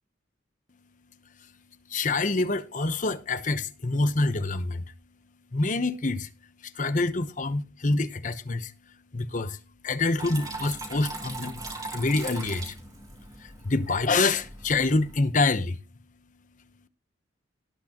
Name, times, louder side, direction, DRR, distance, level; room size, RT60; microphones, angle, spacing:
voice 1, 1.9-4.9 5.5-6.3 6.6-11.6 11.9-12.8 13.4-15.8, left 3 dB, 45° left, 0.9 m, -27 dB
Water tap faucet / Trickle dribble, 10.2-15.2, right 3 dB, 20° right, 3.1 m, -40 dB
18.5 x 6.1 x 3.0 m
head